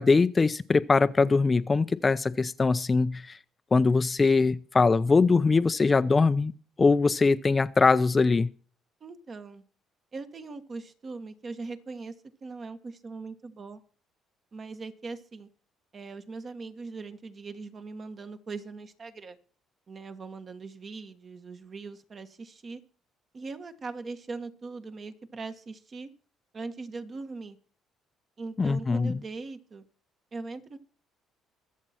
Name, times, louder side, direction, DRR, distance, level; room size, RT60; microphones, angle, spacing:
voice 1, 0.0-3.4 3.7-6.5 6.8-8.5 28.6-29.2, left 4 dB, 25° left, 0.5 m, -22 dB
voice 2, 9.0-9.6 10.1-12.2 12.4-13.8 14.5-15.5 15.9-19.4 19.9-22.8 23.3-26.1 26.5-27.6 28.4-29.8 30.3-30.8, right 3 dB, 40° right, 1.4 m, -40 dB
22.5 x 7.5 x 4.4 m
cardioid pair, 100°, 0 cm